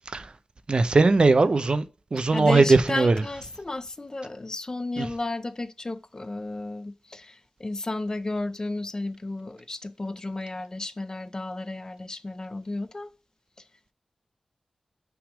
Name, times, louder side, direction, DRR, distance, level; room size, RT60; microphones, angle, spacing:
voice 1, 0.7-1.8 2.1-3.2 5.0-5.1, right 3 dB, 45° right, 0.5 m, -19 dB
voice 2, 2.2-13.1, left 2 dB, 30° left, 0.4 m, -33 dB
5.9 x 3.5 x 4.9 m
wide cardioid pair, 90°, 2 cm